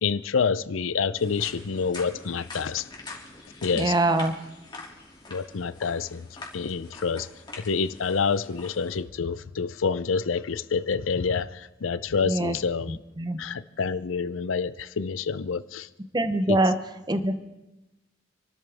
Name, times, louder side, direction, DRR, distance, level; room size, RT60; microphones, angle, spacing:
voice 1, 0.0-2.9 3.6-3.9 5.3-6.3 6.5-7.3 7.6-13.0 13.4-15.9 16.5-16.6, left 5 dB, 90° left, 0.6 m, -27 dB
sound 1, 1.2-9.0, left 3 dB, 25° left, 2.6 m, -44 dB
voice 2, 3.8-4.3 12.2-12.6 13.2-13.4 16.1-16.7 17.1-17.4, right 1 dB, 20° right, 0.8 m, -23 dB
27.5 x 12.5 x 3.5 m
head